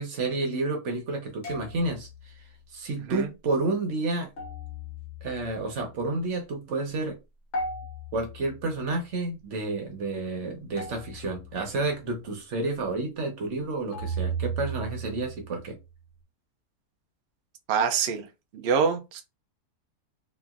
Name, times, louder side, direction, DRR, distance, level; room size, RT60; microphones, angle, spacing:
voice 1, 0.0-2.3 2.7-4.3 5.2-7.2 8.1-15.8, right 2 dB, 55° right, 1.0 m, -30 dB
sound 1, 1.4-2.3 4.4-5.9 7.5-8.9 10.8-11.8 13.9-16.0, right 3 dB, 50° left, 1.1 m, -36 dB
voice 2, 17.7-18.3 18.5-19.2, right 6 dB, 85° right, 0.5 m, -25 dB
2.9 x 2.5 x 2.4 m
omnidirectional pair, 1.7 m